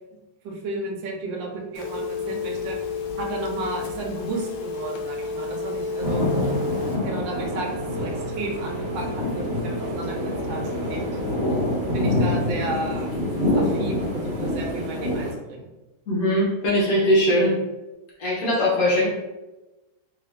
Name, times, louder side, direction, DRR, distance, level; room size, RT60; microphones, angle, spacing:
voice 1, 0.4-2.9 3.2-6.4 7.0-11.1 11.9-13.1 13.5-15.7, right 2 dB, 75° right, 0 dB, 1.4 m, -33 dB
Telephone, 1.7-7.0, left 7 dB, 85° left, 1.3 m, -31 dB
Wind instrument woodwind instrument, 3.8-11.7, right 3 dB, 55° right, 0.6 m, -36 dB
sound 1, 6.0-15.3, left 1 dB, 35° right, 1.4 m, -26 dB
voice 2, 16.1-17.6 18.2-19.1, equal, 55° left, -5 dB, 1.4 m, -20 dB
3.5 x 2.7 x 3.4 m, 1.0 s
omnidirectional pair, 2.0 m